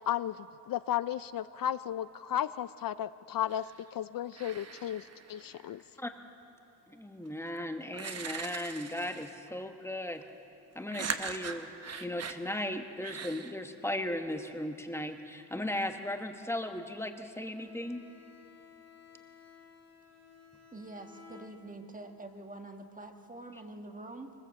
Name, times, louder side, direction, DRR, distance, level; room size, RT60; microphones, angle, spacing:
voice 1, 0.1-3.6 3.9-5.8, left 11 dB, 60° left, 15 dB, 0.5 m, -34 dB
sound 1, 3.5-3.9 4.3-5.7 7.3-7.4 7.9-9.5 10.9-12.4 13.0-13.5, right 5 dB, 40° right, 1.1 m, -40 dB
voice 2, 6.9-10.2 10.7-11.7 12.0-18.0, left 1 dB, 5° left, 6 dB, 1.1 m, -36 dB
Bowed string instrument, 17.5-22.1, left 6 dB, 40° left, 2.2 m, -56 dB
voice 3, 20.7-24.3, right 2 dB, 20° right, 5 dB, 1.4 m, -46 dB
23.0 x 20.5 x 7.6 m, 2.8 s
wide cardioid pair, 145°, 39 cm